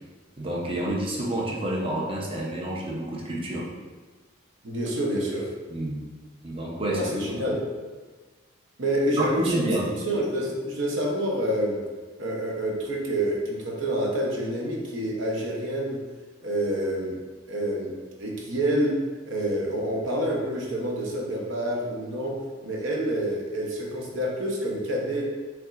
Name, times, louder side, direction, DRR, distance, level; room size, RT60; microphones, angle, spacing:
voice 1, 0.4-3.7 5.7-6.0 6.4-7.4 9.1-9.9, right 1 dB, 25° right, -3 dB, 0.7 m, -29 dB
voice 2, 4.6-5.5 6.9-7.6 8.8-9.7 10.1-11.7 12.2-16.0 16.4-17.2 17.5-17.9 18.2-19.0 19.3-22.3 22.6-25.2, right 1 dB, 60° right, -2 dB, 0.9 m, -27 dB
5.9 x 3.6 x 2.5 m, 1.4 s
head